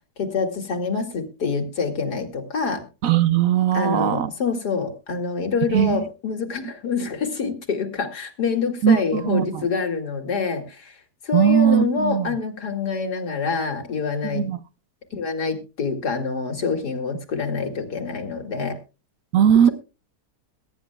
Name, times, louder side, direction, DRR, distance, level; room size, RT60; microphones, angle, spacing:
voice 1, 0.2-2.8 3.7-10.9 11.2-14.5 15.1-18.8, left 5 dB, 80° left, 3.0 m, -26 dB
voice 2, 3.0-4.3 5.7-6.1 8.8-9.6 11.3-12.3 14.2-14.6 19.3-19.7, right 9 dB, 65° right, 1.1 m, -19 dB
22.0 x 10.0 x 2.3 m
omnidirectional pair, 1.7 m